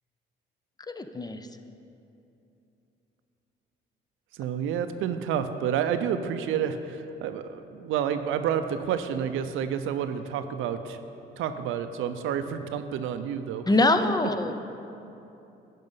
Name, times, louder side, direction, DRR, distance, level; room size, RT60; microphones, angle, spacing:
voice 1, 0.9-1.4 13.7-14.5, left 2 dB, 20° left, 8 dB, 0.5 m, -23 dB
voice 2, 4.3-11.0 11.4-13.9 14.5-14.6, right 8 dB, 85° right, 9 dB, 0.5 m, -29 dB
10.5 x 5.2 x 5.5 m, 2.9 s
cardioid pair, 90°, 20 cm